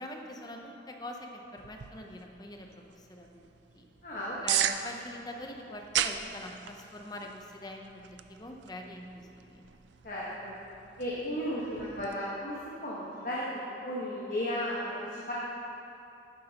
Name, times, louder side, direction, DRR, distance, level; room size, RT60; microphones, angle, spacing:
voice 1, 0.0-3.4 3.7-3.9 4.4-9.1 9.3-9.7, left 1 dB, 20° left, 2 dB, 0.7 m, -43 dB
sound 1, 1.6-12.1, right 11 dB, 70° right, 0.4 m, -38 dB
voice 2, 4.0-4.4 10.0-10.5 11.0-13.4 13.8-15.3, equal, 45° left, -7 dB, 1.3 m, -34 dB
11.5 x 9.8 x 2.9 m, 2.9 s
head